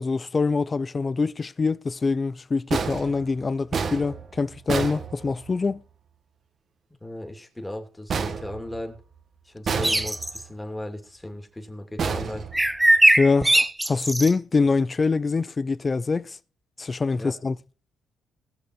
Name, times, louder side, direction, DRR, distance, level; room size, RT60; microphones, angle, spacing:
voice 1, 0.0-5.8 13.2-16.4 16.8-17.5, left 4 dB, 30° left, 0.5 m, -24 dB
sound 1, 2.7-5.8 8.1-9.2 9.7-10.5 12.0-13.1, right 5 dB, 50° right, 1.4 m, -30 dB
voice 2, 7.0-9.0 9.4-12.5 17.1-17.3, left 1 dB, 10° left, 2.9 m, -36 dB
sound 2, 9.8-10.4 12.5-14.3, right 1 dB, 5° right, 0.8 m, -19 dB
19.5 x 6.8 x 4.8 m
cardioid pair, 90°, 0 cm